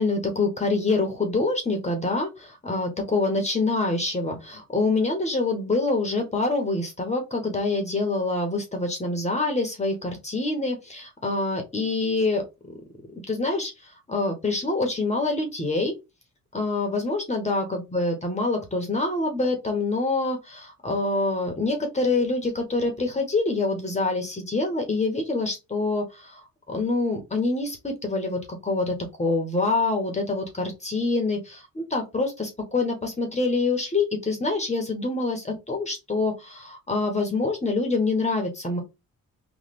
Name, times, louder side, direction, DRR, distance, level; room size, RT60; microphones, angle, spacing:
voice 1, 0.0-12.4 13.3-15.9 16.5-38.8, left 3 dB, 20° left, 3 dB, 1.3 m, -26 dB
3.3 x 2.7 x 4.2 m, 0.24 s
cardioid pair, 90°, 30 cm